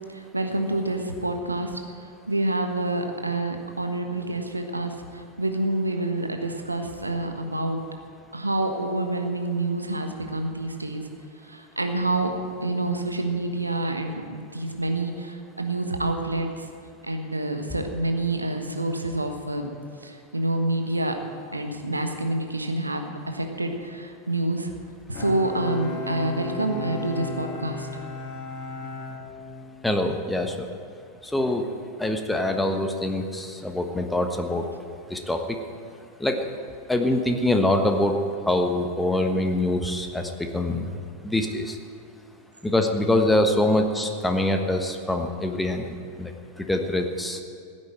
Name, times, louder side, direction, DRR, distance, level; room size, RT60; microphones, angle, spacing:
voice 1, 0.1-1.8 2.3-7.8 8.3-11.0 11.5-12.3 12.6-16.6 17.0-19.7 20.0-21.1 21.5-24.7 25.1-27.9, right 2 dB, 85° right, 5 dB, 1.4 m, -27 dB
Bowed string instrument, 25.1-30.0, left 4 dB, 35° left, 2.3 m, -36 dB
voice 2, 29.8-30.7 31.2-31.7 32.0-34.7 35.1-35.6 36.2-36.5 36.9-38.2 38.4-40.9 41.2-41.8 42.6-47.4, left 1 dB, 5° left, 5 dB, 1.3 m, -24 dB
16.0 x 9.0 x 7.7 m, 2.3 s
figure-of-eight pair, 90°, 0 cm